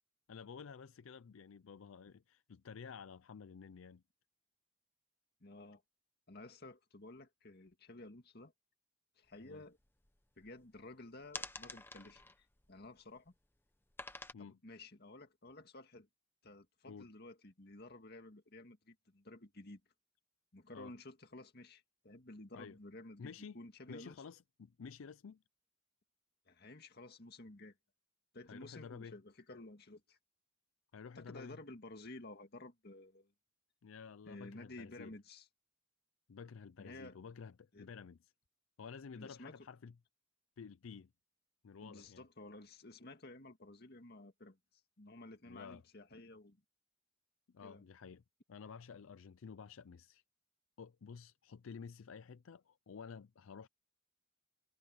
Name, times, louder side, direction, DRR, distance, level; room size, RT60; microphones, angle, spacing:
voice 1, 0.3-4.0 9.4-9.6 14.3-14.6 16.9-17.1 20.7-20.9 22.5-22.8 23.2-23.6 23.9-25.4 28.5-29.2 30.9-31.6 33.8-35.1 36.3-38.2 38.8-39.9 40.6-41.1 41.6-42.2 45.5-45.8 47.5-48.2 48.5-50.2 50.8-53.7, left 6 dB, 80° left, 0.5 m, -51 dB
voice 2, 5.4-5.8 6.3-8.5 9.2-9.8 10.4-13.3 14.4-16.1 16.4-19.8 20.5-24.2 26.5-27.8 28.3-30.2 31.2-33.3 34.3-35.5 36.8-37.2 37.7-37.9 39.2-39.6 41.8-44.6 45.0-46.6 47.6-47.8, left 2 dB, 50° left, 2.0 m, -53 dB
sound 1, 9.3-9.4 9.7-10.8 11.2-13.3 13.9-14.3, left 3 dB, 10° left, 0.9 m, -48 dB
head